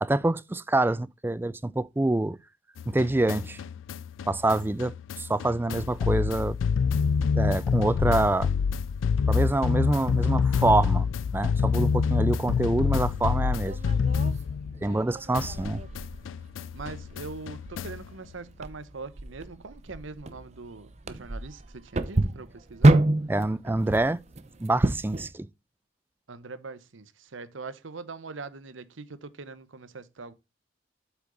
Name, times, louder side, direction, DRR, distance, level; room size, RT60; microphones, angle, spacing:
voice 1, 0.0-2.4 2.9-3.6 4.3-6.6 7.4-8.5 9.3-11.1 11.3-13.8 14.8-15.8 23.3-24.2 24.6-25.5, right 2 dB, 10° right, 0.3 m, -26 dB
sound 1, 2.8-15.1 15.3-18.1, left 6 dB, 85° left, 0.3 m, -27 dB
sound 2, 13.1-25.3, right 2 dB, 35° right, 0.7 m, -29 dB
voice 2, 13.8-14.1 14.8-15.1 16.7-23.0 26.3-30.3, right 4 dB, 85° right, 0.9 m, -42 dB
7.9 x 5.9 x 3.8 m
head